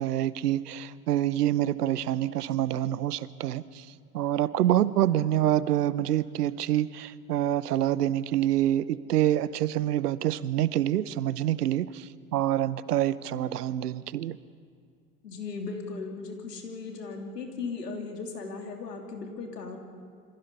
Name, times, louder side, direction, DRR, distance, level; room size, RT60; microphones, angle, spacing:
voice 1, 0.0-3.9 4.1-14.4, right 12 dB, 75° right, 18 dB, 0.9 m, -26 dB
voice 2, 15.2-19.8, left 4 dB, 85° left, 2 dB, 3.3 m, -37 dB
27.5 x 26.0 x 5.5 m, 2.2 s
figure-of-eight pair, 70°, 47 cm